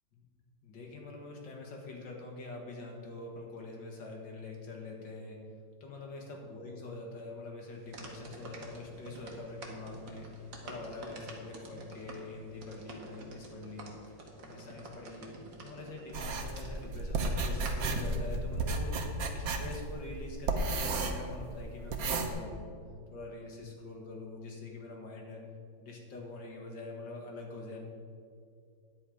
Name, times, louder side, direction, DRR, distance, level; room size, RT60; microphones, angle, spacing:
voice 1, 0.6-5.4 5.8-15.3 15.6-22.7 23.1-25.4 25.8-27.8, left 2 dB, 75° left, 0 dB, 2.3 m, -44 dB
sound 1, 7.7-18.2, right 2 dB, 75° right, 2.1 m, -48 dB
sound 2, 16.1-22.3, right 3 dB, 55° right, 1.2 m, -33 dB
10.0 x 8.3 x 4.9 m, 2.3 s
omnidirectional pair, 2.0 m